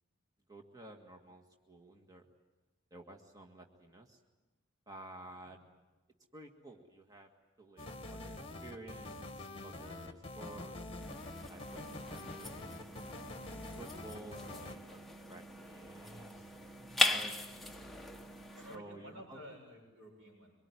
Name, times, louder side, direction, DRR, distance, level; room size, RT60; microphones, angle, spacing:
voice 1, 0.5-2.3 2.9-4.2 4.9-5.6 6.3-7.3 7.6-10.8 11.5-12.9 13.8-15.0 15.3-16.5 17.0-17.3 18.7-19.4, right 2 dB, 20° right, 2 dB, 1.8 m, -52 dB
sound 1, 7.8-14.8, left 2 dB, 30° left, 1.8 m, -46 dB
sound 2, 11.0-18.8, left 2 dB, ahead, 1.0 m, -39 dB
voice 2, 18.5-20.5, equal, 80° right, 1 dB, 7.1 m, -52 dB
24.5 x 22.5 x 9.8 m, 1.2 s
head